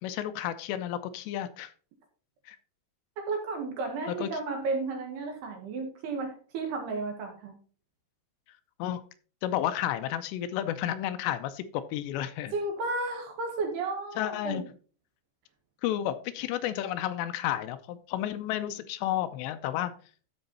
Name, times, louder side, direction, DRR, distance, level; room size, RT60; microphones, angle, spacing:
voice 1, 0.0-1.7 2.5-2.6 4.1-4.3 8.8-9.0 9.4-12.5 14.2-14.6 15.8-19.9, left 12 dB, 80° left, 10 dB, 2.6 m, -31 dB
voice 2, 3.2-7.5 12.5-14.6, right 3 dB, 65° right, 2 dB, 3.5 m, -33 dB
13.0 x 4.8 x 4.1 m, 0.40 s
omnidirectional pair, 5.3 m